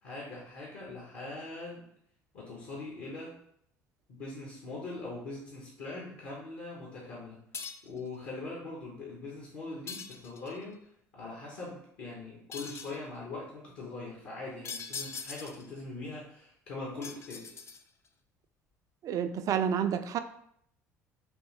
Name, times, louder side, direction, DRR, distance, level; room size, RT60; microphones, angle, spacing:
voice 1, 0.0-1.8 2.3-3.3 4.1-7.4 7.8-10.8 11.1-17.5, left 2 dB, 60° left, -4 dB, 1.0 m, -42 dB
sound 1, 7.5-8.0 9.9-10.6 12.5-13.0 14.6-15.7 17.0-18.1, left 5 dB, 35° left, 0.4 m, -42 dB
voice 2, 19.0-20.2, right 8 dB, 45° right, 9 dB, 0.3 m, -29 dB
3.5 x 2.7 x 3.0 m, 0.69 s
figure-of-eight pair, 60°, 8 cm